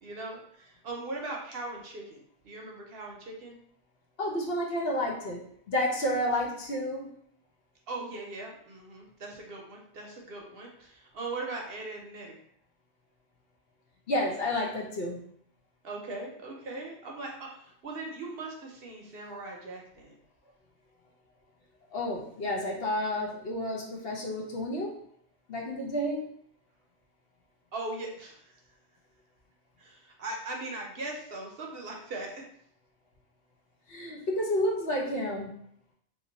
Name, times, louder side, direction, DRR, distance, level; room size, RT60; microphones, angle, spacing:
voice 1, 0.0-3.6 7.9-12.4 15.8-20.2 27.7-28.4 29.8-32.5, right 2 dB, 60° right, 0 dB, 0.8 m, -39 dB
voice 2, 4.2-7.1 14.1-15.2 21.9-25.0 25.5-26.3 33.9-35.5, left 1 dB, 60° left, -2 dB, 0.9 m, -30 dB
3.0 x 2.5 x 3.8 m, 0.68 s
omnidirectional pair, 1.2 m